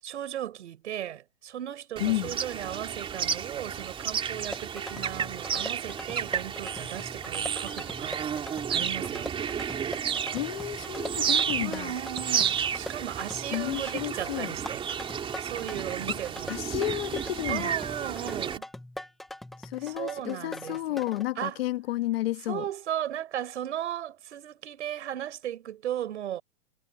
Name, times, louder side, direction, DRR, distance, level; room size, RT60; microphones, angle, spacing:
voice 1, 0.0-8.2 8.7-9.3 11.6-14.8 15.4-16.5 17.5-18.7 19.8-20.8 21.4-21.6 22.5-26.4, right 11 dB, 70° right, 6.4 m, -36 dB
voice 2, 2.0-2.4 10.3-11.9 13.5-14.5 16.1-16.2 16.5-17.8 19.6-22.6, left 15 dB, 55° left, 1.4 m, -31 dB
sound 1, 2.0-18.6, right 8 dB, 15° right, 3.4 m, -32 dB
sound 2, 4.3-21.2, left 1 dB, ahead, 0.3 m, -42 dB
hypercardioid pair, 155°, 36 cm